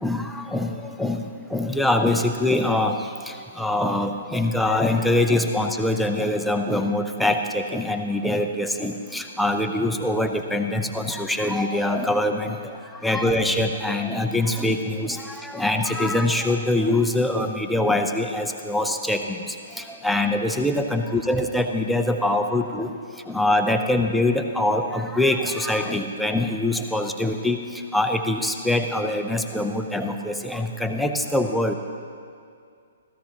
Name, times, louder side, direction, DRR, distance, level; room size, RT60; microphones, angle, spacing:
voice 1, 0.0-1.2 1.5-3.0 3.2-12.6 13.0-22.9 23.3-27.6 27.9-31.7, left 1 dB, ahead, 4 dB, 0.7 m, -24 dB
16.0 x 14.5 x 3.0 m, 2.3 s
figure-of-eight pair, 120°, 0 cm